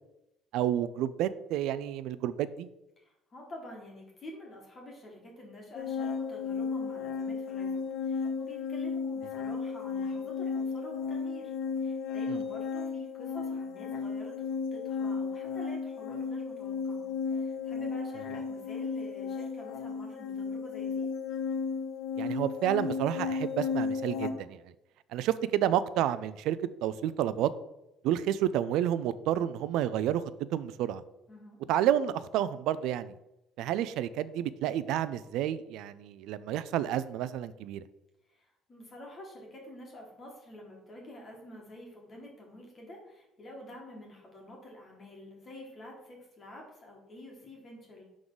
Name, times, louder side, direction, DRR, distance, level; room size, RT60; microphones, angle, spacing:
voice 1, 0.5-2.7 12.3-12.4 22.2-24.6 25.1-27.5 28.0-30.2 30.5-31.0 31.7-33.1 33.6-37.8, right 11 dB, 70° right, 15 dB, 0.4 m, -30 dB
voice 2, 3.0-21.1 31.3-31.6 38.3-48.0, left 1 dB, 25° left, 0 dB, 1.9 m, -48 dB
sound 1, 5.7-24.3, left 5 dB, 65° left, 0.7 m, -34 dB
11.0 x 3.8 x 3.9 m, 0.91 s
cardioid pair, 160°, 0 cm